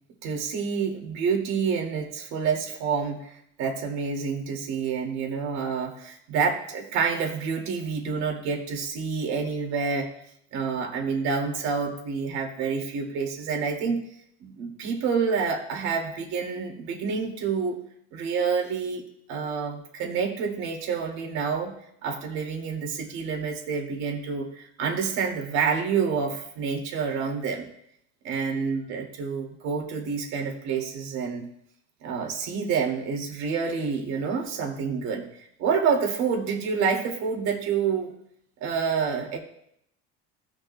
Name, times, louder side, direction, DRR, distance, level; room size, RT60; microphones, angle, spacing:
voice 1, 0.2-10.1 10.5-14.0 14.4-17.8 18.1-19.0 19.3-21.7 22.0-27.7 28.2-31.5 32.0-35.3 35.6-38.1 38.6-39.4, right 5 dB, 65° right, 1 dB, 2.3 m, -28 dB
17.5 x 6.9 x 2.2 m, 0.73 s
cardioid pair, 125°, 30 cm